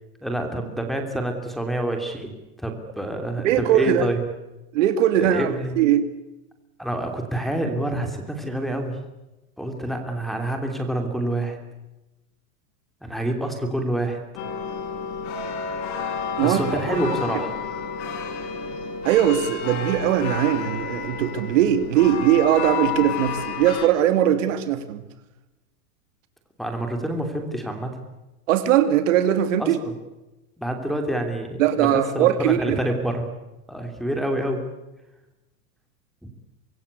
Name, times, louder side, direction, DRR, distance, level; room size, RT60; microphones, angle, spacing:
voice 1, 0.2-2.3 2.6-4.2 5.2-5.7 6.8-9.0 9.6-11.6 13.0-14.2 16.4-17.5 26.6-27.9 29.6-29.9 30.6-33.3 33.7-34.6 36.2-36.3, right 1 dB, ahead, 3 dB, 3.0 m, -27 dB
voice 2, 3.4-4.1 4.7-6.1 16.4-17.0 19.0-25.0 28.5-29.8 31.6-32.8, right 11 dB, 55° right, 10 dB, 2.6 m, -20 dB
sound 1, 14.4-23.9, left 6 dB, 50° left, 7.2 m, -30 dB
25.5 x 22.0 x 8.3 m, 1.0 s
supercardioid pair, 165°, 45 cm